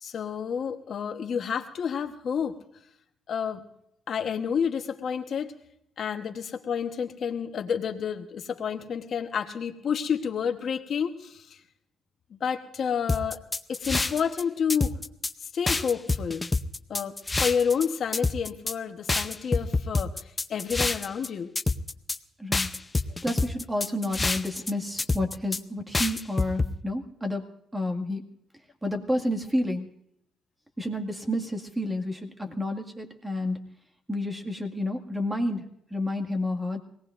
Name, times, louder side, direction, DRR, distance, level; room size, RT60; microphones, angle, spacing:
voice 1, 0.0-2.6 3.3-3.6 4.1-5.5 6.0-11.6 12.3-13.4 13.7-15.0 15.4-16.4 16.9-17.1 17.4-21.5 23.1-23.2, left 7 dB, 60° left, 6 dB, 1.1 m, -29 dB
sound 1, 13.1-14.4 14.7-15.3 15.7-17.9 18.1-18.7 19.1-21.3 21.6-22.2 22.5-24.7 25.0-25.6 25.9-26.7, left 3 dB, 20° left, 0.6 m, -27 dB
voice 2, 23.2-27.4 27.7-28.2 28.8-29.9 30.8-33.7 34.1-36.8, left 1 dB, 10° right, 4 dB, 2.0 m, -30 dB
24.5 x 18.5 x 2.6 m, 0.73 s
cardioid pair, 90°, 0 cm